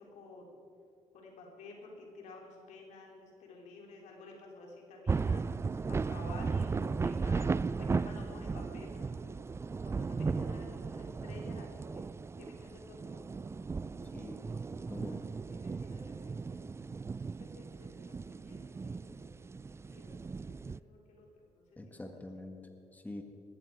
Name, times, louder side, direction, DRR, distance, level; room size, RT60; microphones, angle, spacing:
voice 1, 0.1-0.6 1.1-5.4 5.9-9.4 9.8-12.0 12.4-13.3 13.8-15.2 15.5-16.6 17.4-19.6 19.8-22.1, left 3 dB, 80° left, 0 dB, 3.7 m, -53 dB
sound 1, 5.1-20.8, right 4 dB, 20° right, 0.3 m, -36 dB
voice 2, 14.1-14.5 14.9-15.2 21.8-23.2, left 1 dB, 15° left, 4 dB, 1.6 m, -46 dB
20.0 x 14.5 x 4.9 m, 2.6 s
cardioid pair, 85°, 12 cm